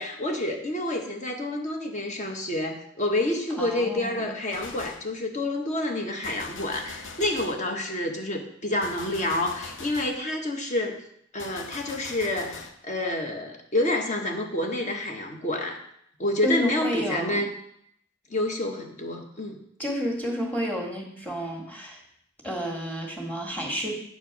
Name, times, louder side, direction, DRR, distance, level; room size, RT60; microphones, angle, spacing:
voice 1, 0.0-11.0 11.3-15.8 16.2-17.5 18.3-19.6, left 1 dB, 40° left, 3 dB, 1.2 m, -28 dB
voice 2, 3.5-4.3 16.4-17.4 19.8-22.0 22.4-24.0, equal, 10° left, -1 dB, 1.9 m, -30 dB
Gunshot gunfire, 4.5-5.2 6.2-7.7 8.8-10.2 11.4-12.8, left 3 dB, 75° left, 0.7 m, -42 dB
9.5 x 4.5 x 6.0 m, 0.71 s
head